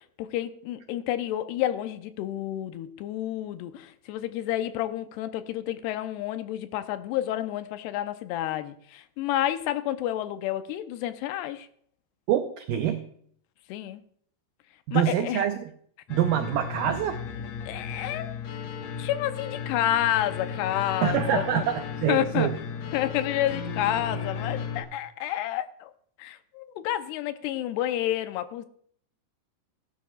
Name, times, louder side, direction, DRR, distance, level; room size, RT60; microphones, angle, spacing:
voice 1, 0.2-11.7 13.7-14.0 14.9-15.4 17.7-18.3 19.0-21.6 22.1-22.5 22.9-25.9 26.2-28.7, left 12 dB, 85° left, 10 dB, 2.7 m, -29 dB
voice 2, 12.3-13.0 14.9-15.7 16.1-17.2 21.0-22.6, right 10 dB, 90° right, 7 dB, 1.9 m, -25 dB
sound 1, 16.1-24.8, left 6 dB, 70° left, 1.6 m, -35 dB
19.0 x 11.0 x 2.3 m, 0.62 s
omnidirectional pair, 4.8 m